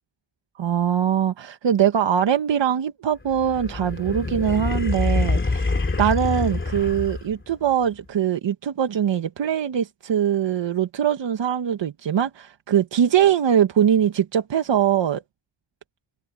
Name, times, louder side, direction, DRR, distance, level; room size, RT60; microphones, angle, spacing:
voice 1, 0.6-15.2, right 9 dB, 80° right, 1.3 m, -22 dB
sound 1, 3.3-7.5, left 3 dB, 25° left, 2.9 m, -25 dB
wide cardioid pair, 125°, 43 cm